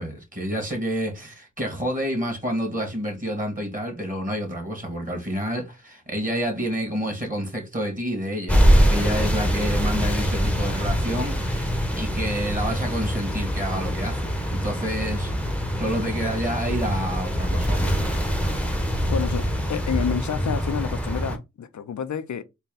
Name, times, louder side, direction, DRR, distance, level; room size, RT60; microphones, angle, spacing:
voice 1, 0.0-15.3 15.8-18.0, equal, 25° right, 1.8 m, -29 dB
sound 1, 8.5-21.4, equal, 5° left, 0.9 m, -24 dB
voice 2, 19.1-22.4, left 7 dB, 70° left, 0.5 m, -29 dB
4.2 x 2.2 x 3.7 m
cardioid pair, 50°, 30 cm